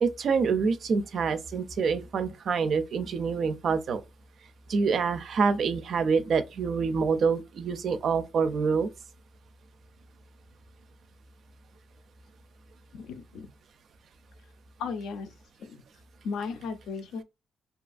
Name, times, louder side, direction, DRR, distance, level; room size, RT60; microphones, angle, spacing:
voice 1, 0.0-4.0 4.7-8.9, right 5 dB, 60° right, 0.4 m, -26 dB
voice 2, 12.9-13.5 14.8-15.3 15.6-15.8 16.2-17.2, left 5 dB, 80° left, 0.5 m, -35 dB
2.8 x 2.4 x 2.4 m
cardioid pair, 90°, 0 cm